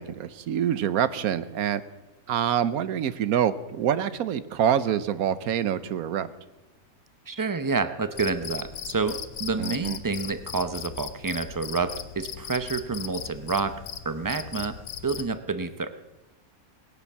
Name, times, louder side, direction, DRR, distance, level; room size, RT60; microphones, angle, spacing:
voice 1, 0.0-1.8 2.3-6.3 9.6-10.0, right 9 dB, 75° right, 14 dB, 1.2 m, -26 dB
voice 2, 7.3-13.8 14.0-14.8 15.0-15.9, right 4 dB, 30° right, 10 dB, 0.4 m, -28 dB
Cricket, 8.1-15.3, left 8 dB, 65° left, 1.2 m, -38 dB
19.0 x 10.5 x 7.3 m, 1.1 s
omnidirectional pair, 1.6 m